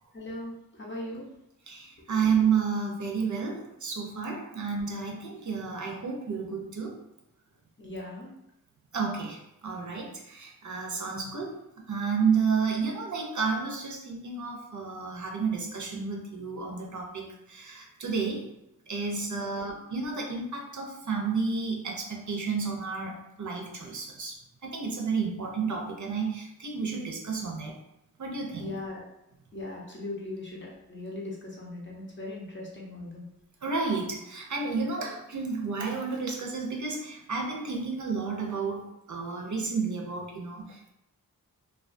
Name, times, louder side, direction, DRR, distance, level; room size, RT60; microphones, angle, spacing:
voice 1, 0.1-1.3 7.8-8.3 19.6-19.7 28.6-29.0 29.5-33.2, left 2 dB, 30° left, -3 dB, 0.7 m, -39 dB
voice 2, 1.7-7.0 8.9-11.6 11.9-18.5 18.9-27.8 28.2-28.8 33.6-40.9, right 5 dB, 55° right, 0 dB, 0.5 m, -31 dB
2.3 x 2.2 x 2.5 m, 0.83 s
wide cardioid pair, 75°, 36 cm